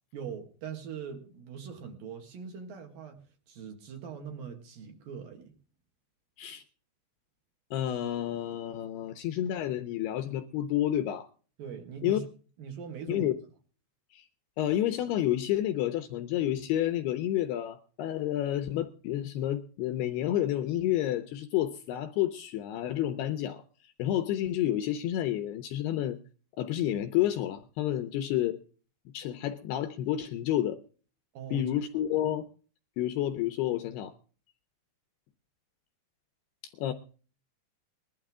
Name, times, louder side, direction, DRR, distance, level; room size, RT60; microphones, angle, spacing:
voice 1, 0.1-5.5 11.6-12.3 12.6-13.3 31.3-31.6, right 7 dB, 60° right, 3.0 m, -42 dB
voice 2, 7.7-11.3 12.0-12.2 13.1-13.3 14.1-14.2 14.6-23.6 24.0-26.2 26.6-28.6 29.1-30.8 31.5-32.5 33.0-34.1 36.8-36.9, left 12 dB, 80° left, 2.4 m, -30 dB
20.5 x 12.0 x 3.6 m
omnidirectional pair, 5.3 m